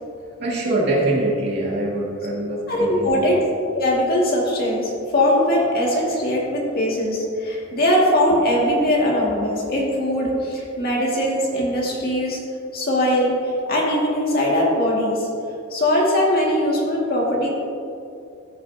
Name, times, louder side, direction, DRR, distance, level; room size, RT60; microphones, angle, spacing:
voice 1, 0.4-3.2, right 1 dB, 60° right, -5 dB, 2.3 m, -23 dB
voice 2, 2.7-3.4 3.8-12.4 12.7-15.3 15.7-17.5, left 1 dB, 50° left, -4 dB, 2.1 m, -20 dB
14.0 x 6.7 x 2.8 m, 2.6 s
head